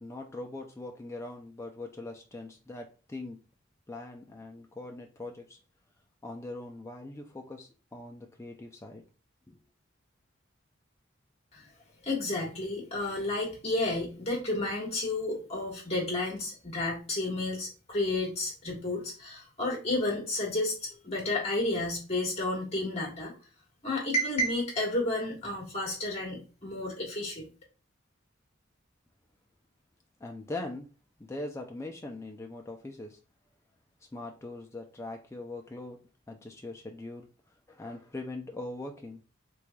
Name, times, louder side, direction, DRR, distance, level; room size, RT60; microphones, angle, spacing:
voice 1, 0.0-3.4 3.9-5.6 6.2-9.0 9.5-9.6 30.2-30.9 31.2-33.2 34.1-36.0 36.3-37.3 37.7-39.2, left 2 dB, 15° left, 0.3 m, -41 dB
voice 2, 12.0-23.3 23.8-27.4, left 2 dB, 30° left, 1.5 m, -31 dB
3.6 x 3.1 x 2.2 m
head